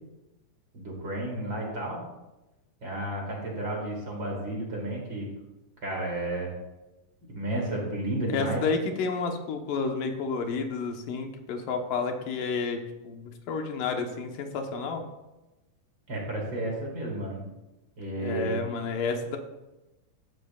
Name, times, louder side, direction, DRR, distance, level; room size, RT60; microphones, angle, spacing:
voice 1, 0.7-2.0 2.8-5.3 5.8-6.5 7.3-8.6 16.1-17.4 18.0-18.6, right 1 dB, 40° right, -2 dB, 3.3 m, -32 dB
voice 2, 8.3-15.0 18.2-19.4, left 4 dB, 85° left, 4 dB, 2.8 m, -30 dB
14.5 x 12.0 x 2.4 m, 1.0 s
omnidirectional pair, 3.7 m